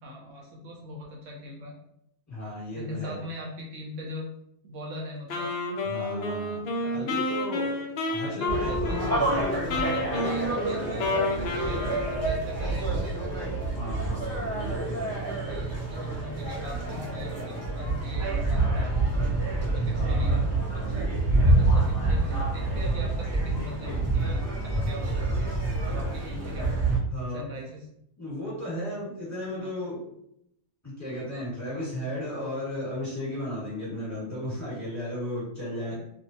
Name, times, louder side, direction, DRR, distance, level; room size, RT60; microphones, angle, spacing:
voice 1, 0.0-1.7 2.7-4.3 4.6-5.5 6.7-7.1 8.2-9.3 9.6-13.1 15.2-18.9 19.6-24.4 24.7-25.2 25.8-26.8 27.3-27.9 29.6-29.7, equal, 65° right, -1 dB, 0.8 m, -41 dB
voice 2, 2.3-3.2 5.9-10.3 13.7-15.2 19.9-21.5 27.1-27.6 28.2-30.0 30.8-35.9, left 1 dB, 10° left, -8 dB, 1.2 m, -35 dB
Wind instrument woodwind instrument, 5.3-12.4, left 2 dB, 85° left, 0.5 m, -30 dB
sound 1, 8.5-27.0, right 2 dB, 15° right, 0.6 m, -27 dB
2.6 x 2.2 x 2.7 m, 0.76 s
omnidirectional pair, 1.7 m